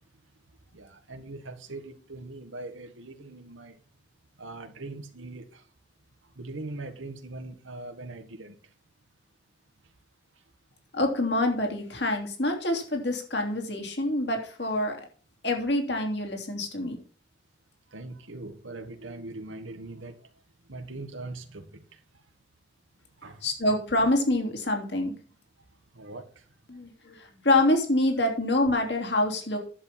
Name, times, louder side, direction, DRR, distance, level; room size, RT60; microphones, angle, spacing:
voice 1, 0.7-3.7 4.4-5.6 6.4-8.5 17.9-20.2 20.7-21.8 23.2-23.4 25.9-26.3, right 2 dB, 90° right, 1.7 m, -41 dB
voice 2, 10.9-15.0 15.4-17.0 23.4-25.1 26.7-29.6, left 1 dB, 60° left, 3.1 m, -26 dB
11.0 x 7.6 x 4.4 m
head